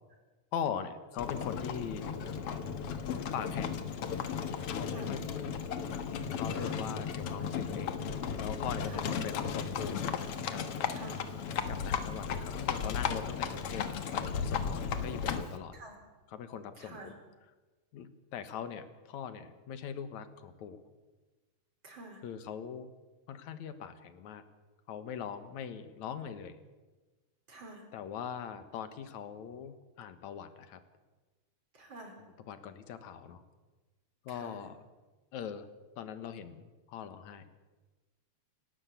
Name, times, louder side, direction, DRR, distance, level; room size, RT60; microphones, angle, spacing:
voice 1, 0.5-2.2 3.3-3.8 4.8-5.6 6.4-8.0 8.4-10.0 10.5-10.6 11.7-15.8 16.3-17.1 17.9-20.8 22.2-22.9 23.3-24.4 24.9-26.6 27.9-30.8 32.2-33.4 34.3-34.8 35.3-35.7 36.0-37.5, left 8 dB, 75° left, 11 dB, 2.7 m, -41 dB
Livestock farm animals working animals, 1.2-15.6, left 6 dB, 60° left, 2.1 m, -35 dB
voice 2, 16.8-17.1 21.8-22.2 27.5-27.8 31.7-32.1 34.3-34.6, right 2 dB, 40° right, 2 dB, 5.2 m, -48 dB
29.0 x 12.5 x 8.3 m, 1.2 s
omnidirectional pair, 3.3 m